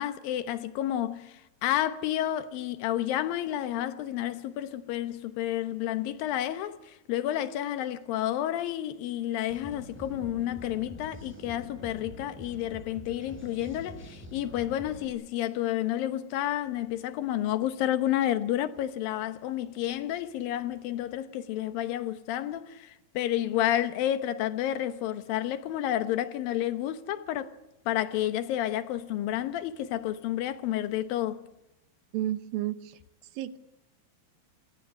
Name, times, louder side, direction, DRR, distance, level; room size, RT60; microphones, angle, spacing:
voice 1, 0.0-27.5 27.9-31.4, left 12 dB, 75° left, 2.7 m, -30 dB
sound 1, 9.5-15.1, left 1 dB, 5° right, 5.6 m, -45 dB
voice 2, 32.1-33.0 33.3-33.6, right 13 dB, 75° right, 2.7 m, -31 dB
27.0 x 17.0 x 9.9 m
omnidirectional pair, 4.4 m